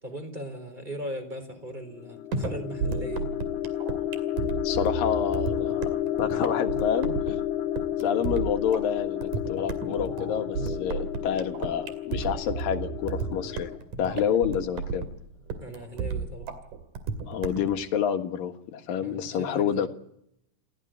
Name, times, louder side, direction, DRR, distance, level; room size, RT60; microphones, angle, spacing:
voice 1, 0.0-3.3 15.6-16.5 19.0-19.9, equal, 10° right, 9 dB, 3.9 m, -38 dB
sound 1, 1.9-13.8, left 12 dB, 85° left, 3.1 m, -31 dB
sound 2, 2.3-17.7, right 5 dB, 55° right, 3.8 m, -33 dB
voice 2, 4.6-7.4 8.0-13.7 14.0-15.1 17.3-19.9, left 8 dB, 65° left, 7 dB, 3.1 m, -28 dB
28.5 x 16.0 x 9.2 m, 0.75 s
omnidirectional pair, 4.5 m